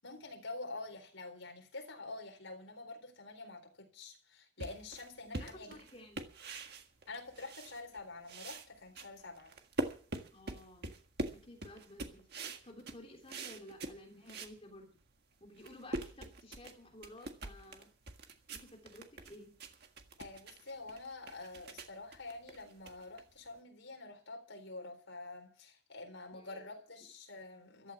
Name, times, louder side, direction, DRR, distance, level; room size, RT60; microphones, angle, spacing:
voice 1, 0.0-5.8 7.1-9.6 20.2-27.9, left 3 dB, 70° left, 4.2 m, -47 dB
sound 1, 4.6-8.0 8.3-14.6 15.0-15.1 15.5-23.6, right 2 dB, 50° right, 1.7 m, -44 dB
voice 2, 5.3-6.2 10.3-10.9 11.3-14.9 15.4-17.9 18.5-19.5 26.3-26.8, left 1 dB, 30° left, 3.2 m, -54 dB
14.5 x 12.5 x 6.1 m
head